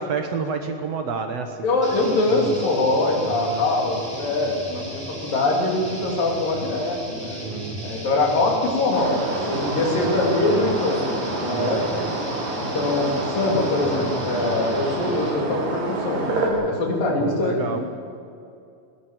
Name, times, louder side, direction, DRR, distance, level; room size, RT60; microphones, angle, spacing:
voice 1, 0.0-1.7 2.3-2.7 3.2-3.6 7.4-7.8 11.5-11.9 17.2-17.9, right 5 dB, 60° right, 6 dB, 1.9 m, -29 dB
voice 2, 1.6-7.4 7.8-9.2 9.5-12.0 12.6-17.8, left 2 dB, 80° left, 0 dB, 5.0 m, -23 dB
sound 1, 1.8-15.5, right 1 dB, 15° right, 4.5 m, -36 dB
sound 2, 8.9-16.5, right 2 dB, 75° right, 4.7 m, -28 dB
19.0 x 19.0 x 7.6 m, 2.5 s
omnidirectional pair, 3.9 m